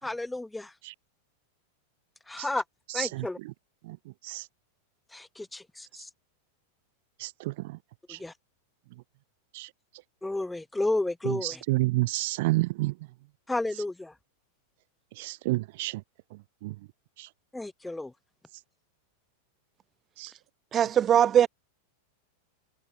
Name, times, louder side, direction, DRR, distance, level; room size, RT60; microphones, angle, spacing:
voice 1, 0.0-0.7 2.3-2.6 2.9-3.4 5.1-6.1 8.1-8.3 10.2-11.6 13.5-14.1 17.5-18.1, left 2 dB, 5° left, 3.2 m, -32 dB
voice 2, 11.4-12.9 15.2-16.0 17.2-17.3 20.2-20.3, right 20 dB, 50° right, 0.5 m, -28 dB
voice 3, 20.7-21.5, right 9 dB, 25° right, 4.7 m, -20 dB
figure-of-eight pair, 90°, 0 cm